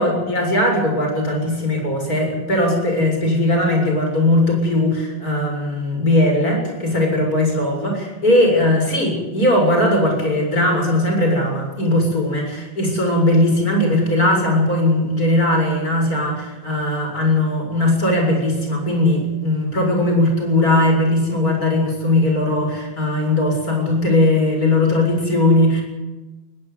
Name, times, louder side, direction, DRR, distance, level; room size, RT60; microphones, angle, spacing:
voice 1, 0.0-25.8, left 1 dB, 45° left, 2 dB, 7.6 m, -18 dB
21.5 x 18.0 x 8.6 m, 1.2 s
omnidirectional pair, 2.1 m